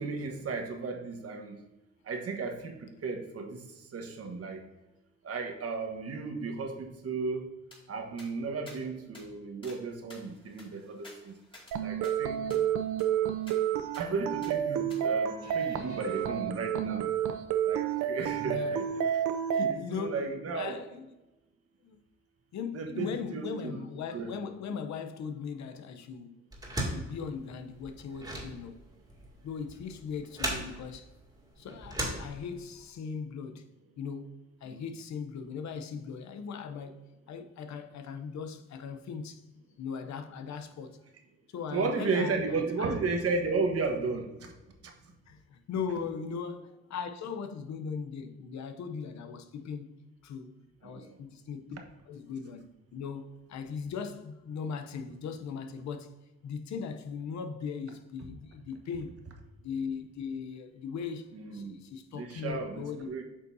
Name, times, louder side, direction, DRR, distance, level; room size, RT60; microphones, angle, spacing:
voice 1, 0.0-1.6 2.0-4.6 5.2-7.5 7.9-11.3 11.8-12.4 13.9-17.1 17.6-19.3 19.6-20.8 22.7-23.8 24.1-24.3 34.7-34.8 41.7-44.5 44.8-44.9 50.8-51.2 61.3-61.8 62.1-63.2, right 4 dB, 50° right, 1.3 m, -34 dB
sound 1, 7.7-7.8 8.2-8.3 8.7-8.8 9.1-9.3 9.6-9.8 10.1-11.8 12.0-12.1 12.5-12.6 13.0-13.1 13.5-13.6 13.9-14.1 14.4-14.5 14.9-15.0, left 2 dB, 15° left, 2.5 m, -52 dB
sound 2, 11.7-19.7, right 9 dB, 75° right, 0.6 m, -30 dB
voice 2, 15.4-16.1 18.4-18.8 19.5-20.2 20.5-21.0 21.8-22.0 22.5-26.4 26.8-28.8 29.4-31.1 31.6-33.7 34.0-39.5 39.8-41.0 41.5-42.9 45.3-51.8 52.1-52.6 52.9-56.1 56.4-59.1 59.6-63.1, left 6 dB, 65° left, 0.8 m, -39 dB
sound 3, 26.5-32.8, right 1 dB, 10° right, 2.3 m, -37 dB
8.6 x 5.4 x 2.7 m
cardioid pair, 90°, 30 cm